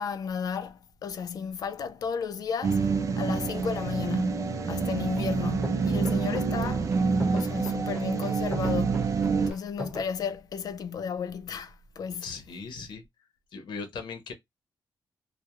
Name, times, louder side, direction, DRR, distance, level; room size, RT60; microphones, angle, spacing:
voice 1, 0.0-2.9 3.2-9.1 9.5-12.3, left 6 dB, 55° left, 0.3 m, -34 dB
sound 1, 2.6-9.5, right 5 dB, 45° right, 0.4 m, -27 dB
sound 2, 5.2-5.3 5.6-10.0, equal, 10° right, 1.1 m, -39 dB
voice 2, 12.2-13.0 13.5-14.3, left 5 dB, 80° left, 0.7 m, -38 dB
2.3 x 2.1 x 2.8 m
wide cardioid pair, 170°, 8 cm